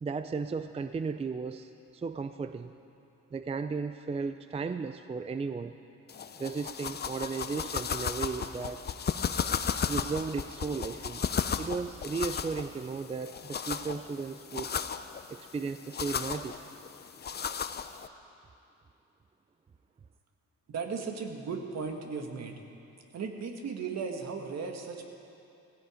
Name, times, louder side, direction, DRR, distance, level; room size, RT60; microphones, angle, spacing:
voice 1, 0.0-2.7 3.3-5.8 6.4-8.8 9.9-11.3 11.6-14.7 15.3-16.6, right 4 dB, 20° right, 10 dB, 0.5 m, -35 dB
sound 1, 6.1-18.1, left 7 dB, 35° left, 0.6 m, -35 dB
voice 2, 20.7-22.6 23.1-25.1, right 5 dB, 60° right, 3 dB, 1.8 m, -36 dB
16.5 x 16.5 x 5.1 m, 2.7 s
cardioid pair, 90°, 30 cm